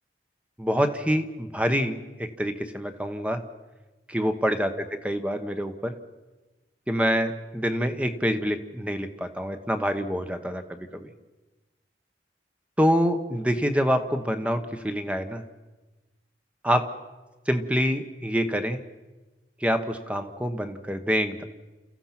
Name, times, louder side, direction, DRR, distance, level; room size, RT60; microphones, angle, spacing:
voice 1, 0.6-3.4 4.1-5.9 6.9-11.1 12.8-15.4 16.6-16.9 17.5-18.8 19.6-21.4, equal, 5° right, 8 dB, 1.1 m, -26 dB
29.0 x 15.0 x 6.0 m, 1.2 s
head